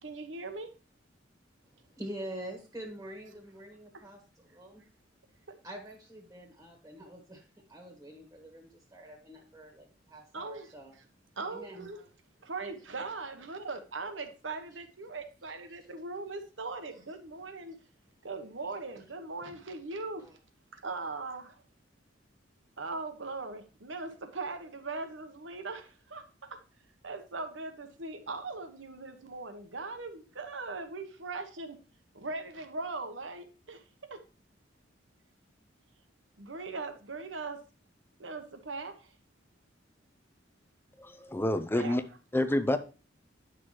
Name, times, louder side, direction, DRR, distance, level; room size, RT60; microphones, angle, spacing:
voice 1, 0.0-0.7 10.3-10.7 11.4-12.0 12.4-17.8 18.2-20.2 20.7-21.6 22.8-26.6 27.0-31.8 32.1-33.8 34.1-34.2 36.4-37.6 38.2-39.1 41.5-42.0, right 3 dB, 80° right, 1.1 m, -40 dB
voice 2, 1.6-4.8 5.6-10.9 11.5-11.9 15.4-15.8 17.7-17.8 20.2-20.4, right 1 dB, 15° right, 1.5 m, -46 dB
voice 3, 41.0-42.0 42.3-42.8, left 1 dB, 10° left, 0.5 m, -28 dB
9.7 x 6.0 x 3.2 m
head